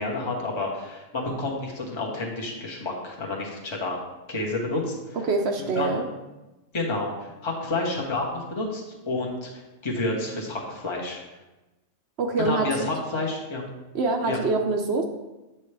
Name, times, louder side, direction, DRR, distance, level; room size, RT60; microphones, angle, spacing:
voice 1, 0.0-4.0 4.3-5.2 5.6-6.0 6.7-11.2 12.4-13.7 14.3-14.4, left 2 dB, 25° left, -1 dB, 1.0 m, -30 dB
voice 2, 5.1-6.0 12.2-12.9 13.9-15.0, right 3 dB, 60° right, 4 dB, 0.8 m, -25 dB
8.4 x 5.6 x 3.3 m, 1.1 s
omnidirectional pair, 1.3 m